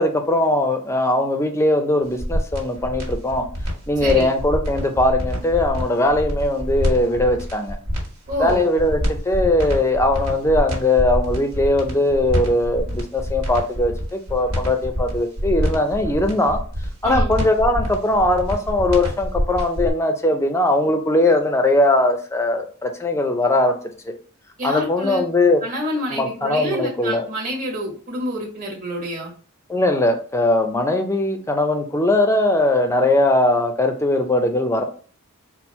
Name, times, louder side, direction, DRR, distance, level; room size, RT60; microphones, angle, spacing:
voice 1, 0.0-3.5 3.9-7.8 8.4-16.6 17.0-23.7 24.6-25.6 26.1-27.3 29.7-34.8, left 1 dB, 15° left, 5 dB, 0.5 m, -20 dB
sound 1, 2.1-19.9, equal, 80° right, 1.6 m, -26 dB
voice 2, 8.3-8.7 17.0-17.3 24.6-25.2 25.6-29.3, equal, 35° right, -2 dB, 1.4 m, -27 dB
4.3 x 2.1 x 4.2 m, 0.42 s
head